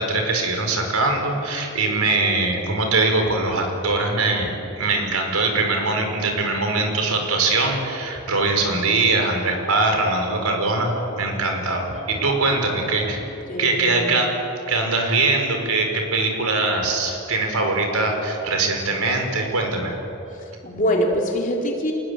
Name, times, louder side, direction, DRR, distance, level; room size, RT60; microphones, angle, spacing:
voice 1, 0.0-13.2 13.6-14.3 14.7-19.9, right 3 dB, 85° right, 3 dB, 5.1 m, -22 dB
voice 2, 1.8-2.7 12.5-12.9 13.5-14.2 20.3-21.9, equal, 35° left, 0 dB, 3.8 m, -26 dB
28.0 x 19.5 x 8.7 m, 2.9 s
head